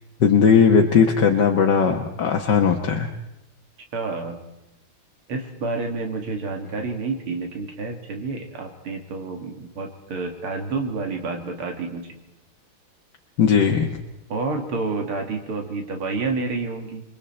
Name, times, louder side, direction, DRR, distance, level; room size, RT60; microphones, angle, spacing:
voice 1, 0.2-3.1 13.4-13.9, left 6 dB, 60° left, 1 dB, 1.8 m, -18 dB
voice 2, 3.9-4.4 5.3-12.1 14.3-17.0, right 3 dB, 90° right, 3 dB, 2.9 m, -29 dB
28.5 x 22.5 x 4.4 m, 0.91 s
omnidirectional pair, 2.3 m